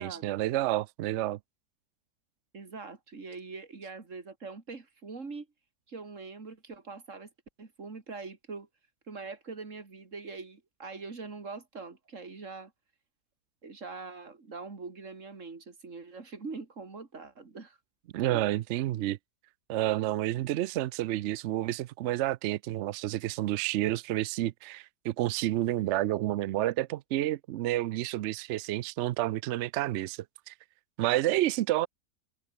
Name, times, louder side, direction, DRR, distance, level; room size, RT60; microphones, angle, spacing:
voice 1, 0.0-1.4 18.1-19.2 19.7-30.5 31.0-31.9, right 14 dB, 75° right, 0.6 m, -30 dB
voice 2, 2.5-5.5 5.9-7.3 7.6-8.7 9.1-12.7 13.6-17.8 18.3-18.5, right 4 dB, 50° right, 2.9 m, -43 dB
omnidirectional pair, 1.7 m